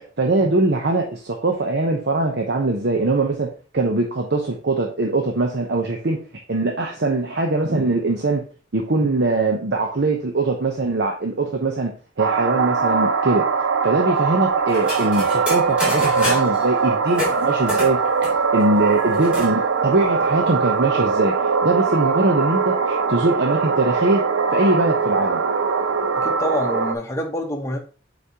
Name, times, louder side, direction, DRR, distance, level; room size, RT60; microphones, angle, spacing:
voice 1, 0.2-3.5 3.7-6.2 6.5-8.4 8.7-11.9 12.2-13.5 13.8-18.0 18.5-24.2 24.5-25.4, right 2 dB, 60° right, 2 dB, 0.8 m, -21 dB
sound 1, 12.2-26.9, right 5 dB, 90° right, 0.6 m, -21 dB
sound 2, 14.7-16.6 17.1-19.5 19.9-20.0 20.2-20.9, left 1 dB, 5° right, 3.1 m, -29 dB
voice 2, 26.2-27.8, left 1 dB, 15° left, 2 dB, 1.1 m, -26 dB
8.3 x 4.2 x 2.9 m, 0.37 s
head